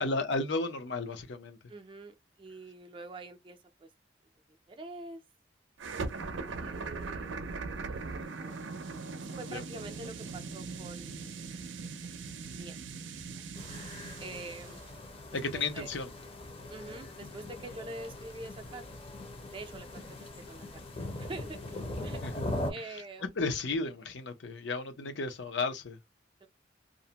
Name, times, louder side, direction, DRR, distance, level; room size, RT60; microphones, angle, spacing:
voice 1, 0.0-1.6 6.4-6.9 9.5-9.6 15.3-16.1 22.2-22.3 23.4-26.0, left 3 dB, 75° left, 0.6 m, -33 dB
voice 2, 1.7-3.9 4.5-5.2 6.5-7.4 7.9-8.6 9.2-11.2 11.5-11.6 12.5-12.8 13.3-13.4 14.2-14.9 15.3-15.4 15.7-15.9 16.7-18.9 19.5-20.6 21.2-22.2 22.7-23.3 24.5-24.6 26.4-26.5, right 2 dB, 30° right, 0.4 m, -45 dB
sound 1, 5.8-14.9, right 4 dB, 90° right, 0.5 m, -40 dB
sound 2, 13.5-22.7, left 1 dB, 30° left, 0.6 m, -41 dB
2.5 x 2.1 x 2.8 m
head